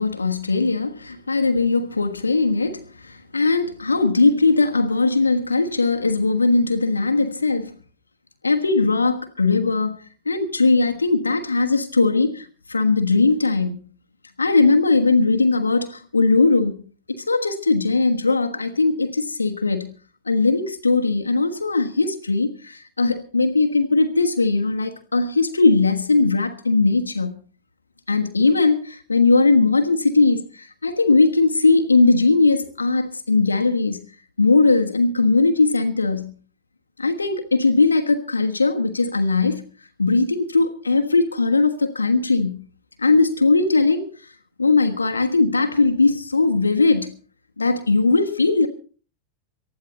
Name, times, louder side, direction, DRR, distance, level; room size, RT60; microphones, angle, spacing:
voice 1, 0.0-7.7 8.4-10.0 10.2-13.8 14.4-16.8 17.1-19.9 20.3-27.4 28.1-34.0 34.4-36.3 37.0-39.6 40.0-42.6 43.0-44.1 44.6-47.1 47.6-48.7, left 3 dB, 80° left, 1.3 m, -19 dB
19.0 x 13.5 x 4.0 m
figure-of-eight pair, 90°, 0 cm